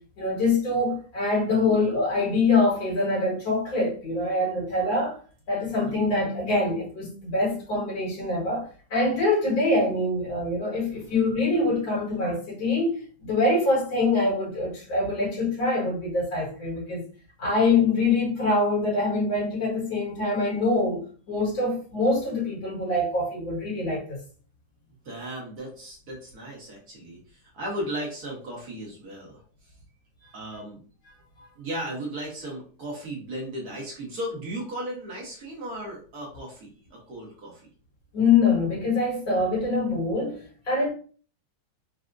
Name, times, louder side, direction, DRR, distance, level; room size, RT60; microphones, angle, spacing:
voice 1, 0.2-5.2 5.5-17.0 17.4-21.0 21.3-24.2 38.1-40.9, left 3 dB, 70° left, 2.2 m, -24 dB
voice 2, 5.7-6.0 25.0-29.4 30.3-30.8 31.6-37.6, right 1 dB, 55° right, 1.3 m, -36 dB
4.3 x 2.1 x 2.4 m
omnidirectional pair, 2.2 m